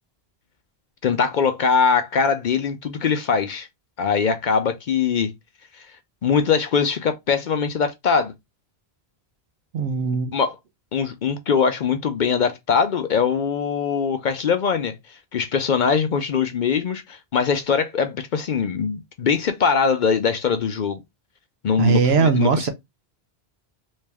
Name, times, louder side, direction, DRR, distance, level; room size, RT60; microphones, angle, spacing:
voice 1, 1.0-3.7 4.0-5.3 5.8-5.9 6.2-8.3 10.3-10.6 10.9-21.0 21.6-22.7, left 6 dB, 55° left, 0.6 m, -22 dB
voice 2, 9.7-10.3 21.8-22.7, right 5 dB, 75° right, 0.9 m, -19 dB
3.1 x 2.7 x 3.4 m
omnidirectional pair, 1.1 m